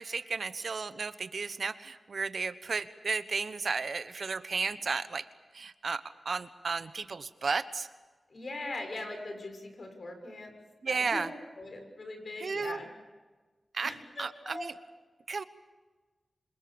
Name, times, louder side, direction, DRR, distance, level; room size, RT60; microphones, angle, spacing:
voice 1, 0.0-5.3 5.5-7.9 10.8-11.3 12.4-12.8 13.7-13.9 14.2-14.7 15.3-15.4, right 4 dB, 65° right, 12 dB, 1.1 m, -33 dB
voice 2, 8.3-10.5 10.9-11.2 11.6-12.9 13.8-14.7, left 2 dB, 55° left, 4 dB, 6.4 m, -41 dB
27.0 x 26.5 x 7.1 m, 1.3 s
wide cardioid pair, 90°, 0 cm